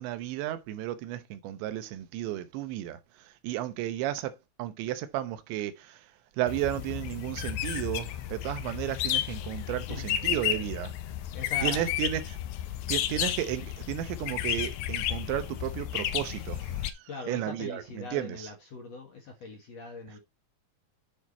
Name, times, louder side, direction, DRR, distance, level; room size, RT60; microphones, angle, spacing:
voice 1, 0.0-10.9 11.6-12.4 12.9-18.5, right 13 dB, 80° right, 3.2 m, -33 dB
sound 1, 6.5-16.9, left 12 dB, 75° left, 2.6 m, -32 dB
voice 2, 11.3-11.9 13.2-13.3 17.1-20.2, left 3 dB, 60° left, 1.8 m, -41 dB
9.1 x 5.0 x 4.2 m
omnidirectional pair, 5.2 m